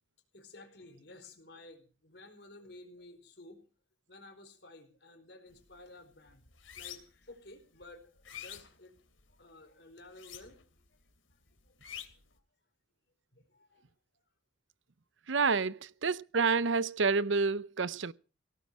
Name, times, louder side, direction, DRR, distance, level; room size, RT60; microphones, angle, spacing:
voice 1, 0.3-3.6 4.1-9.0 9.3-11.0 11.5-11.8 13.3-13.8, left 2 dB, 55° left, 4.8 m, -54 dB
sound 1, 5.5-5.8 6.1-7.3 7.7-9.4 10.1-10.8 11.1-12.3, left 10 dB, 85° left, 2.9 m, -47 dB
voice 2, 15.3-18.1, right 4 dB, 75° right, 0.7 m, -29 dB
18.0 x 14.5 x 4.8 m
head